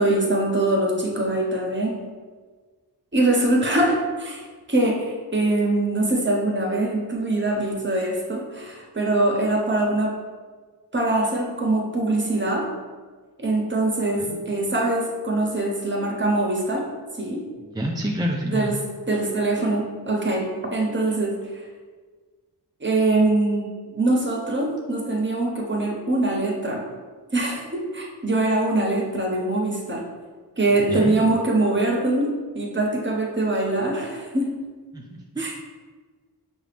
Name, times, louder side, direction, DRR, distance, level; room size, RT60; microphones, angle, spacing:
voice 1, 0.0-2.0 3.1-10.2 10.9-12.7 13.4-16.9 17.2-17.5 18.5-18.8 19.1-21.4 22.8-26.8 27.3-30.0 30.6-34.6 35.4-35.7, right 2 dB, 30° right, 0 dB, 1.0 m, -23 dB
voice 2, 17.6-18.7 30.9-31.2 34.9-35.4, equal, 10° right, -1 dB, 0.3 m, -28 dB
5.4 x 2.5 x 3.4 m, 1.4 s
cardioid pair, 50°, 40 cm